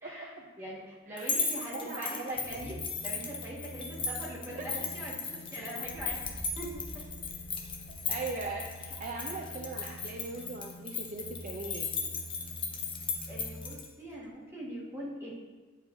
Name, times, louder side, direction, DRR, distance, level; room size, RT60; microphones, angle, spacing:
voice 1, 0.0-6.2 6.5-6.7 13.3-15.3, equal, 15° right, -6 dB, 1.4 m, -42 dB
voice 2, 1.1-1.5 1.7-2.8 4.7-4.8 7.9-11.9, right 3 dB, 40° right, 0 dB, 0.4 m, -40 dB
sound 1, 1.2-13.9, left 5 dB, 25° left, 0.6 m, -37 dB
sound 2, 2.3-13.9 14.3-14.4, equal, 85° left, 0.6 m, -48 dB
sound 3, 5.8-9.6, equal, 70° left, 1.6 m, -48 dB
8.7 x 4.6 x 2.6 m, 1.3 s
head